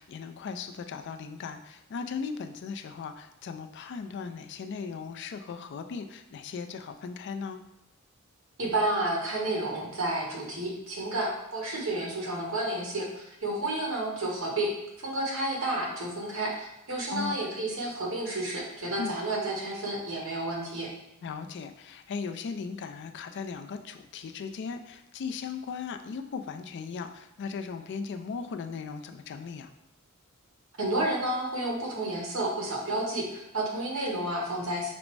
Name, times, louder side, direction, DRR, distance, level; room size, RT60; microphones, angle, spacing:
voice 1, 0.0-7.6 17.1-17.3 19.0-19.2 21.2-29.7, left 5 dB, 55° left, 7 dB, 0.3 m, -37 dB
voice 2, 8.6-20.9 30.8-34.9, right 1 dB, 70° right, -2 dB, 1.2 m, -31 dB
5.1 x 2.1 x 4.6 m, 0.85 s
head